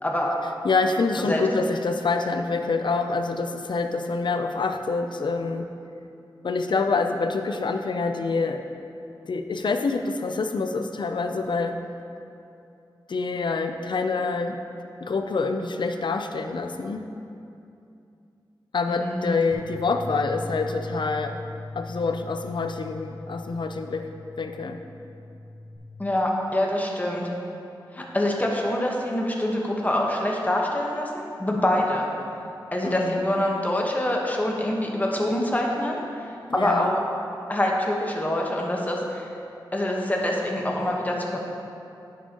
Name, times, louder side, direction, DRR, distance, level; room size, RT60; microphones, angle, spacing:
voice 1, 0.0-0.3 1.3-1.4 18.9-19.4 26.0-27.3 27.9-32.1 32.7-36.0 36.5-37.0 37.5-39.3 39.7-41.4, left 1 dB, 20° left, -1 dB, 1.2 m, -25 dB
voice 2, 0.6-5.7 6.4-8.6 9.3-11.8 13.1-14.6 15.0-17.0 18.7-21.4 21.8-24.1 24.4-24.8 32.8-33.2 36.5-36.9, left 4 dB, 65° left, 6 dB, 0.5 m, -26 dB
Bass guitar, 19.5-25.8, left 2 dB, ahead, 1.8 m, -39 dB
10.0 x 7.1 x 3.0 m, 2.6 s
wide cardioid pair, 65°, 8 cm